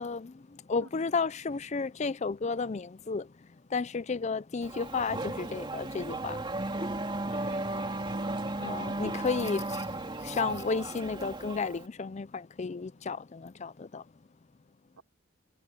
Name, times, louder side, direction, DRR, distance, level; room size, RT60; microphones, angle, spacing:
voice 1, 0.0-3.3 3.7-6.4 8.6-9.9 10.2-14.0, left 4 dB, 30° left, 0.4 m, -33 dB
Race car auto racing / Accelerating revving vroom, 4.6-11.9, right 2 dB, 20° right, 2.6 m, -35 dB
voice 2, 7.3-8.8 15.0-15.1, right 2 dB, 80° right, 3.7 m, -49 dB
head